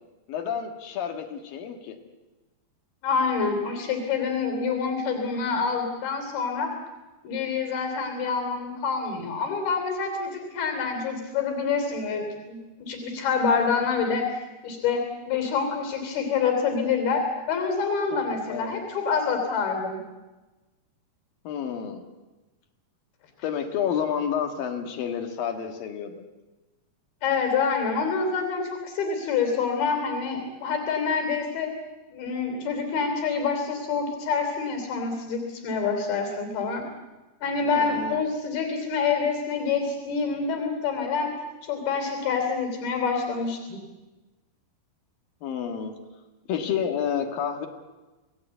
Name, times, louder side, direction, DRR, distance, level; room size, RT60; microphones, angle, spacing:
voice 1, 0.3-2.0 18.1-18.7 21.4-22.0 23.4-26.2 37.7-38.2 45.4-45.9 46.5-47.7, left 8 dB, 70° left, 5 dB, 3.5 m, -30 dB
voice 2, 3.0-6.7 7.2-20.0 27.2-31.7 32.1-36.9 37.4-41.3 41.6-43.8, left 5 dB, 85° left, 4 dB, 5.1 m, -27 dB
27.0 x 19.0 x 8.2 m, 1.1 s
omnidirectional pair, 4.3 m